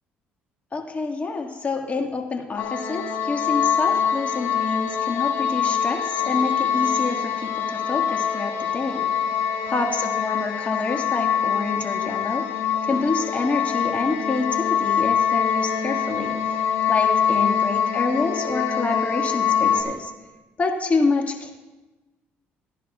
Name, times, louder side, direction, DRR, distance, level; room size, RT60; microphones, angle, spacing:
voice 1, 0.7-9.1 9.7-12.5 12.8-20.1 20.6-21.5, left 3 dB, 35° left, 2 dB, 1.7 m, -27 dB
sound 1, 2.6-19.8, left 7 dB, 80° left, 1.7 m, -24 dB
18.5 x 10.5 x 2.3 m, 1.1 s
supercardioid pair, 75°, 5 cm